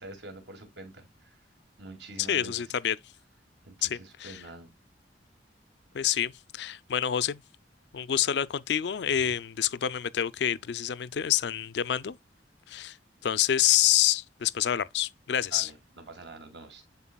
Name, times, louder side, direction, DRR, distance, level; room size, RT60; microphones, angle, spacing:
voice 1, 0.0-1.4 1.8-2.7 3.6-4.7 9.1-9.3 15.5-16.8, right 2 dB, 65° right, 2.2 m, -46 dB
voice 2, 2.3-3.0 3.8-4.4 5.9-7.4 7.9-12.2 12.7-13.0 13.2-15.7, left 10 dB, 65° left, 0.4 m, -27 dB
11.0 x 4.2 x 2.2 m
head